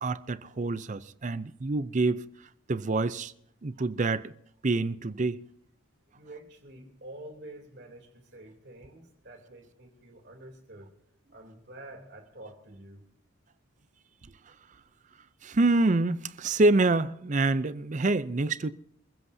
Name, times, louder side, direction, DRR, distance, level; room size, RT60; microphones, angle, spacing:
voice 1, 0.0-2.2 2.7-3.3 3.6-4.3 4.6-5.4 14.5-14.6 15.4-18.7, right 2 dB, 35° right, 0.5 m, -26 dB
voice 2, 6.1-10.9 11.3-13.0, right 1 dB, 55° right, 3.3 m, -48 dB
29.0 x 15.5 x 2.8 m
head